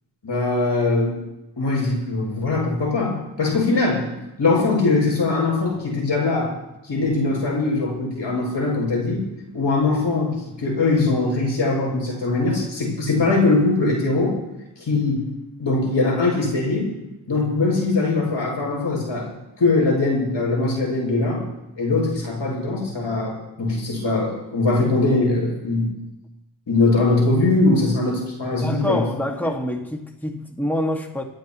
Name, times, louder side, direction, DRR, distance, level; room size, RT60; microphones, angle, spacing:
voice 1, 0.2-1.2 1.6-4.1 4.4-6.5 6.9-9.2 9.5-14.3 14.8-15.3 15.6-16.9 17.3-19.3 19.6-21.4 21.8-25.9 26.7-29.0, left 3 dB, 80° left, -2 dB, 6.9 m, -21 dB
voice 2, 28.6-31.2, left 1 dB, 5° left, 2 dB, 2.0 m, -26 dB
27.0 x 13.0 x 3.1 m, 0.92 s
cardioid pair, 60°, 44 cm